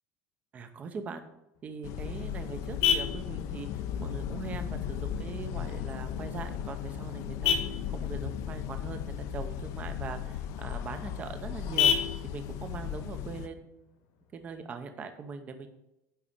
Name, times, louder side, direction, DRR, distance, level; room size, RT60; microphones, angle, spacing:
voice 1, 0.5-1.2 1.6-7.6 7.9-9.0 9.3-11.9 12.2-13.9 14.3-15.7, right 5 dB, 20° right, 8 dB, 0.7 m, -41 dB
Vehicle horn car horn honking, 1.5-14.5, left 7 dB, 85° left, 2.1 m, -35 dB
sound 1, 1.8-13.5, left 9 dB, 50° left, 0.6 m, -36 dB
10.0 x 4.1 x 7.1 m, 0.89 s
cardioid pair, 175°, 7 cm